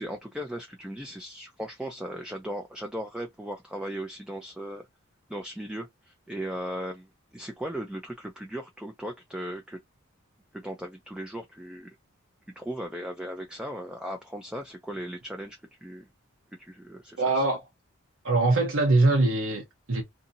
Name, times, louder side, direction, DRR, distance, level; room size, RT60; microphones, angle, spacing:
voice 1, 0.0-4.9 5.3-9.8 10.5-11.9 12.6-16.1 16.6-17.4, equal, 5° right, 0.4 m, -37 dB
voice 2, 17.2-17.6 18.2-20.0, right 2 dB, 70° right, 0.8 m, -23 dB
2.7 x 2.6 x 2.6 m
head